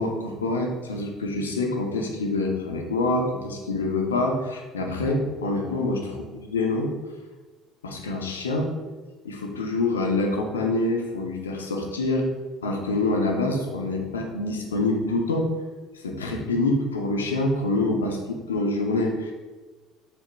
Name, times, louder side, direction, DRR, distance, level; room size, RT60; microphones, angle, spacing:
voice 1, 0.0-6.9 7.8-8.7 9.2-12.3 12.6-15.5 15.9-19.3, left 2 dB, 90° left, 2 dB, 0.5 m, -26 dB
4.2 x 2.3 x 3.1 m, 1.3 s
hypercardioid pair, 60°, 0 cm